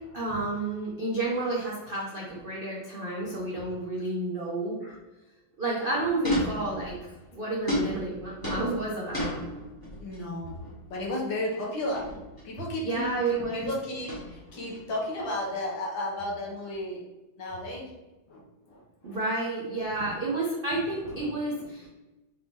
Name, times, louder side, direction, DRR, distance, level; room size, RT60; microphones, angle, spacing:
voice 1, 0.1-4.8 5.6-7.0 7.3-9.3 12.8-13.7 19.0-21.9, right 2 dB, 60° right, -5 dB, 0.5 m, -30 dB
sound 1, 6.2-7.1 7.7-10.2 10.5-10.8 11.9-12.5 12.8-13.1 14.0-14.8, left 1 dB, 15° left, 1.1 m, -33 dB
voice 2, 10.0-10.6 10.9-12.1 12.4-17.0 17.4-17.9 18.3-19.2 20.0-20.1 21.0-21.3 21.6-21.7, left 1 dB, 70° left, -2 dB, 1.8 m, -34 dB
5.2 x 2.8 x 3.5 m, 1.1 s
omnidirectional pair, 2.2 m